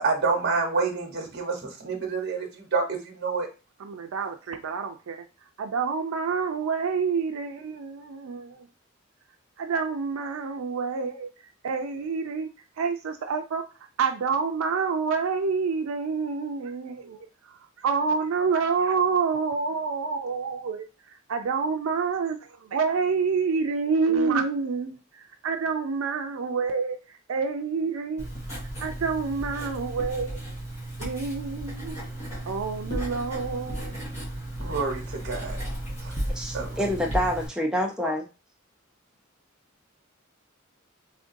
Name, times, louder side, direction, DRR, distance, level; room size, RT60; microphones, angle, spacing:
voice 1, 0.0-3.5 34.6-35.6 36.0-36.2 36.5-36.8, right 4 dB, 55° right, 2 dB, 1.0 m, -28 dB
voice 2, 3.8-5.2 5.6-8.7 9.6-11.3 11.6-12.5 12.8-13.6 14.0-17.3 17.8-20.8 21.3-28.2 28.8-30.4 31.0-32.0 32.4-33.9, right 5 dB, 80° right, 6 dB, 0.4 m, -28 dB
Writing, 28.2-37.5, right 1 dB, 35° left, 1.4 m, -34 dB
voice 3, 36.3-38.2, equal, 5° right, -1 dB, 0.4 m, -27 dB
3.6 x 2.5 x 2.6 m, 0.30 s
head